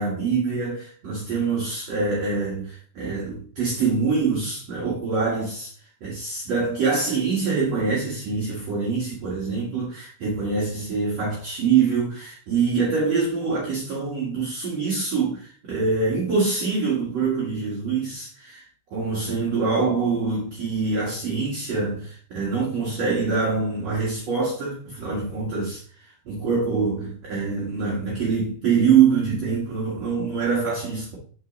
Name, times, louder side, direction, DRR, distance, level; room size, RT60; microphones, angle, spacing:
voice 1, 0.0-5.7 6.0-18.6 18.9-25.8 26.3-31.2, right 5 dB, 50° right, 2.0 m, -24 dB
6.9 x 6.1 x 4.1 m
omnidirectional pair, 5.6 m